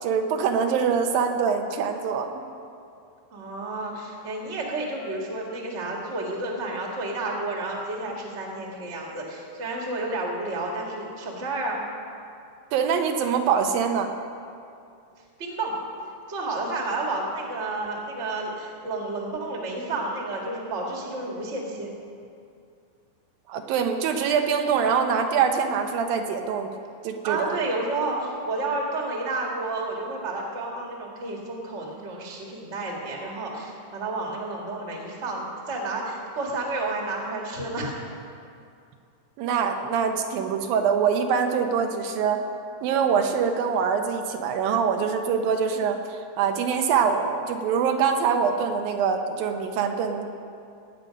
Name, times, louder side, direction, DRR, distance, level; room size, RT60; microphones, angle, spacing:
voice 1, 0.0-2.3 12.7-14.1 23.5-26.7 27.0-27.6 39.4-42.4 42.8-46.0 46.4-50.2, right 6 dB, 85° right, 5 dB, 2.7 m, -24 dB
voice 2, 3.3-11.8 15.4-15.7 16.3-21.9 27.2-38.2, right 2 dB, 30° right, -1 dB, 1.6 m, -31 dB
18.5 x 9.1 x 5.2 m, 2.4 s
omnidirectional pair, 4.1 m